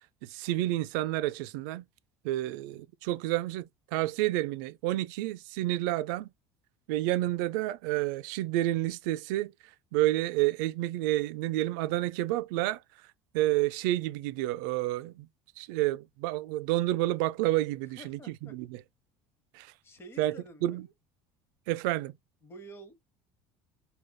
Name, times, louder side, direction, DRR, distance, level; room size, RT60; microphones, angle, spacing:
voice 1, 0.2-1.8 2.2-6.3 6.9-9.5 9.9-12.8 13.3-15.3 15.6-18.8 19.5-19.7 20.2-20.3 20.6-20.8 21.7-22.1, right 16 dB, 85° right, 0.4 m, -29 dB
voice 2, 18.0-18.5 19.8-20.9 22.4-23.0, right 1 dB, 25° left, 1.1 m, -49 dB
4.9 x 2.3 x 2.2 m
cardioid pair, 140°, 10 cm